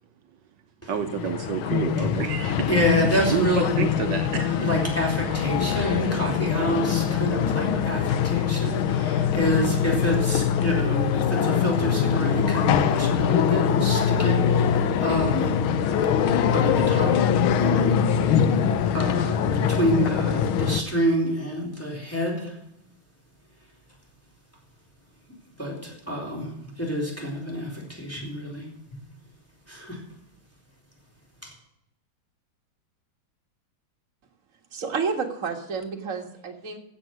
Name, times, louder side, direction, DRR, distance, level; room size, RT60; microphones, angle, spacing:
sound 1, 0.9-20.8, left 8 dB, 80° left, 1.6 m, -23 dB
voice 1, 0.9-2.7 3.3-4.7, right 8 dB, 65° right, 7 dB, 1.3 m, -29 dB
voice 2, 2.7-3.7 4.6-15.6 16.5-17.3 17.6-18.0 18.9-22.5 25.6-26.5 26.8-28.7 29.7-30.0 31.4-31.5, equal, 5° left, -2 dB, 3.8 m, -27 dB
voice 3, 34.7-36.8, right 5 dB, 40° right, 2 dB, 2.0 m, -30 dB
15.0 x 7.7 x 6.1 m, 0.83 s
omnidirectional pair, 2.3 m